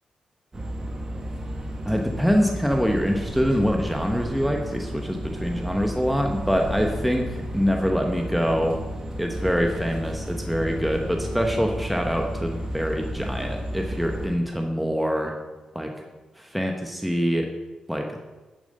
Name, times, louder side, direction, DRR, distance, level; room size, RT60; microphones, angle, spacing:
sound 1, 0.5-14.3, equal, 30° right, 1.7 m, -33 dB
voice 1, 1.8-8.8 9.2-15.3 15.7-15.9 16.4-17.5 17.9-18.1, equal, ahead, 2 dB, 0.9 m, -25 dB
10.5 x 7.2 x 5.3 m, 1.2 s
cardioid pair, 100°, 2 cm